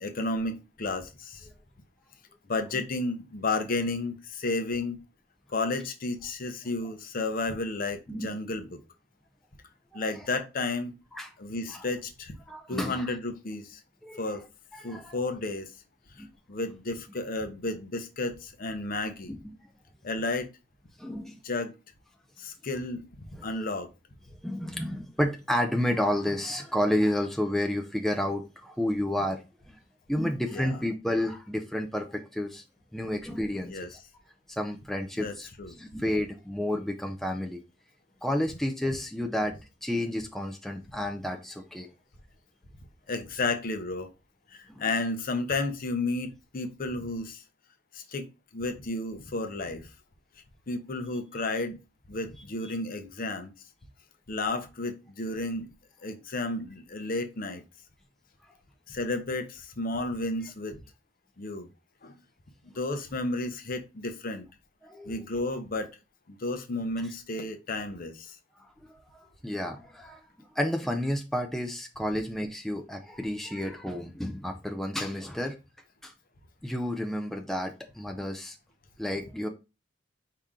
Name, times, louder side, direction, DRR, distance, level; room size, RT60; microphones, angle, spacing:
voice 1, 0.0-1.5 2.5-5.0 5.5-8.8 9.9-10.9 11.4-12.4 12.7-13.8 14.2-14.4 14.8-15.7 16.2-19.4 20.0-20.5 21.4-21.7 22.4-23.0 23.4-23.9 30.5-30.8 33.6-33.9 35.2-35.8 43.1-44.1 44.5-47.4 47.9-48.3 48.5-49.9 50.7-51.8 52.1-53.5 54.3-55.7 56.0-57.6 58.9-60.8 61.4-61.7 62.0-62.1 62.6-64.5 65.1-65.9 66.3-68.4, left 2 dB, 50° left, 0.7 m, -32 dB
voice 2, 12.5-13.1 14.0-14.2 14.7-15.2 16.2-16.3 19.3-19.5 21.0-21.4 23.3-23.5 24.4-29.4 29.7-29.8 30.1-32.6 32.9-34.0 34.5-35.5 35.8-37.6 38.2-39.5 39.8-41.9 44.7-44.8 64.8-65.2 68.9-69.0 69.4-70.2 70.6-75.6 76.0-76.1 76.6-78.6 79.0-79.5, left 1 dB, ahead, 0.5 m, -31 dB
4.9 x 2.8 x 3.6 m
head